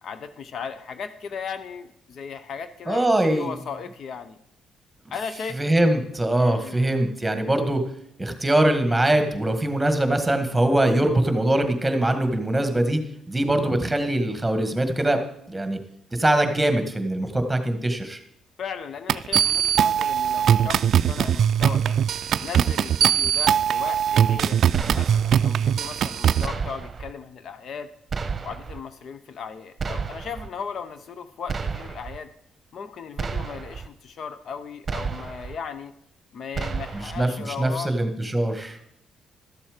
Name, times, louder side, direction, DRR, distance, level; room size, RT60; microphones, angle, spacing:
voice 1, 0.0-4.4 5.1-5.6 6.4-7.0 18.6-22.0 22.4-27.9 28.4-32.3 32.7-35.9 36.3-37.9, left 6 dB, 60° left, 11 dB, 0.7 m, -36 dB
voice 2, 2.9-3.5 5.6-7.8 8.2-13.0 13.3-15.2 15.5-15.8 16.1-18.2 37.0-38.8, right 1 dB, 10° right, 7 dB, 1.6 m, -22 dB
sound 1, 19.1-26.5, right 9 dB, 65° right, 0.3 m, -21 dB
sound 2, 24.7-25.4 26.4-27.1 28.1-28.8 29.8-30.5 31.5-32.2 33.2-33.9 34.9-35.6 36.5-37.2, right 5 dB, 35° right, 0.9 m, -31 dB
12.5 x 7.2 x 5.1 m, 0.76 s
cardioid pair, 90°, 0 cm